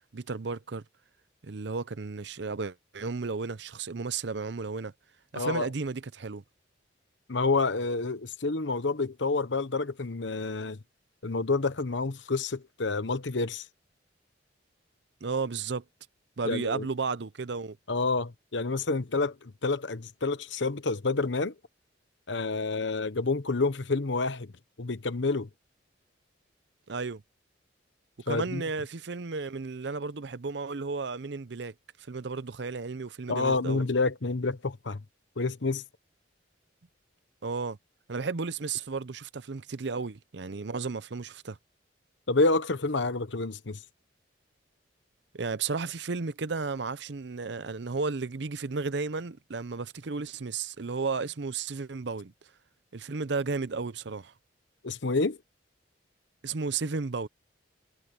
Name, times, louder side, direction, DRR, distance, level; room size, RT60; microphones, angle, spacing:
voice 1, 0.1-0.8 1.4-4.9 5.3-6.4 15.2-15.8 16.4-17.8 26.9-27.2 28.3-31.7 32.1-33.9 37.4-37.8 38.1-41.6 45.3-52.3 52.9-54.3 56.4-57.3, right 4 dB, 65° right, 0.7 m, -33 dB
voice 2, 5.3-5.7 7.3-10.8 11.2-13.6 16.4-16.9 17.9-21.5 22.3-24.5 24.8-25.5 28.3-28.6 33.3-35.0 35.4-35.8 42.3-43.8 54.8-55.4, left 3 dB, 75° left, 1.0 m, -28 dB
head